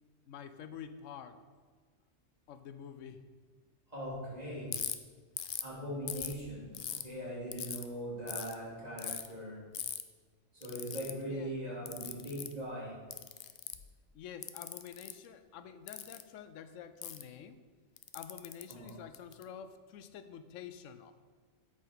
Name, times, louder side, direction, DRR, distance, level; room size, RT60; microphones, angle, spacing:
voice 1, 0.3-1.4 2.5-3.2 11.3-11.6 14.1-17.6 18.1-21.1, left 8 dB, 85° left, 10 dB, 0.9 m, -48 dB
voice 2, 3.9-4.7 5.6-9.6 10.5-13.0 18.7-19.0, equal, 35° right, -7 dB, 3.0 m, -41 dB
Ratchet pawl, 4.7-4.9 5.4-5.7 6.1-7.0 7.5-7.8 8.3-8.5 9.0-9.3 9.7-10.0 10.6-11.1 11.9-12.5 13.1-13.9 14.4-15.1 15.9-16.2 17.0-17.2 18.0-19.4, left 9 dB, 60° left, 0.6 m, -40 dB
8.3 x 5.2 x 5.8 m, 1.5 s
omnidirectional pair, 1.3 m